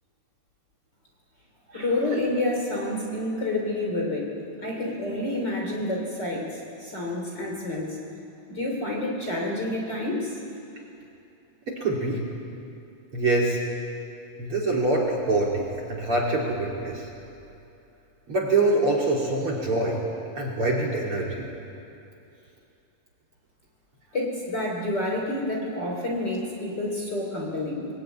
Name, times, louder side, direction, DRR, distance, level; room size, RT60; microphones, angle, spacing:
voice 1, 1.7-8.0 8.5-10.4 24.1-27.9, left 1 dB, 30° left, -1 dB, 3.1 m, -29 dB
voice 2, 11.7-12.2 13.1-13.6 14.4-17.1 18.3-20.0 20.3-21.5, right 2 dB, 40° right, -1 dB, 3.0 m, -25 dB
22.0 x 20.0 x 8.9 m, 2.8 s
omnidirectional pair, 4.5 m